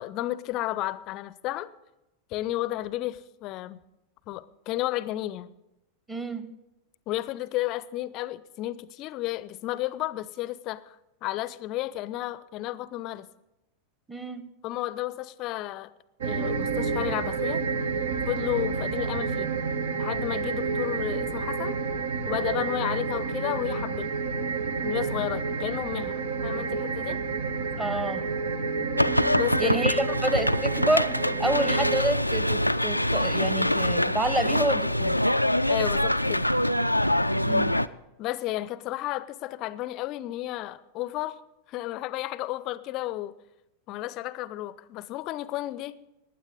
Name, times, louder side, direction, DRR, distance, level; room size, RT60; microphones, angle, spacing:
voice 1, 0.0-1.7 2.3-3.8 4.3-5.5 7.1-11.0 11.2-13.3 14.6-15.9 16.2-17.6 18.3-19.5 20.0-21.8 22.3-24.1 24.8-27.2 29.3-29.7 35.7-36.5 38.2-41.4 41.7-43.3 43.9-46.0, left 16 dB, 40° left, 18 dB, 0.5 m, -32 dB
voice 2, 6.1-6.5 14.1-14.5 27.8-28.2 29.6-31.1 31.4-35.2 37.4-37.8, right 1 dB, 15° right, 11 dB, 1.1 m, -28 dB
sound 1, 16.2-32.0, right 4 dB, 60° right, 0.8 m, -29 dB
sound 2, 29.0-37.9, left 1 dB, 90° left, 0.3 m, -24 dB
19.5 x 9.3 x 3.7 m, 0.93 s
figure-of-eight pair, 90°, 0 cm